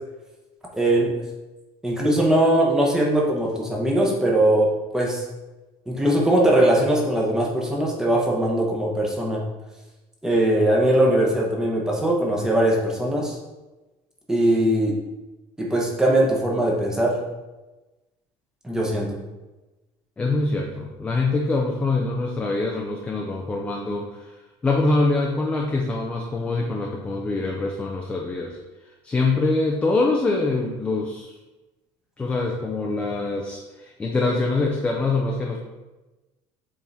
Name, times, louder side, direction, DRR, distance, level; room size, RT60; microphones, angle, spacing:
voice 1, 0.7-1.2 1.8-5.3 5.9-9.4 10.2-13.4 14.3-14.9 15.6-17.2 18.6-19.2, right 1 dB, 5° right, -2 dB, 1.0 m, -20 dB
voice 2, 20.2-24.4 24.6-28.6 29.0-31.3 32.2-35.6, left 3 dB, 10° left, 0 dB, 0.5 m, -24 dB
7.4 x 3.7 x 4.1 m, 1.1 s
cardioid pair, 180°, 12 cm